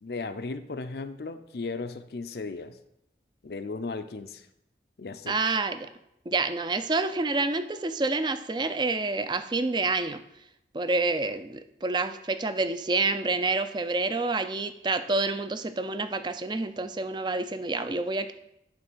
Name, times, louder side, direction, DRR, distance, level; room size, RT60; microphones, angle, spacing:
voice 1, 0.0-2.7 3.4-4.5 5.0-5.4, left 3 dB, 60° left, 9 dB, 0.5 m, -36 dB
voice 2, 5.3-5.9 6.3-10.2 10.7-18.3, right 3 dB, 25° right, 10 dB, 0.4 m, -28 dB
9.7 x 3.3 x 6.2 m, 0.81 s
head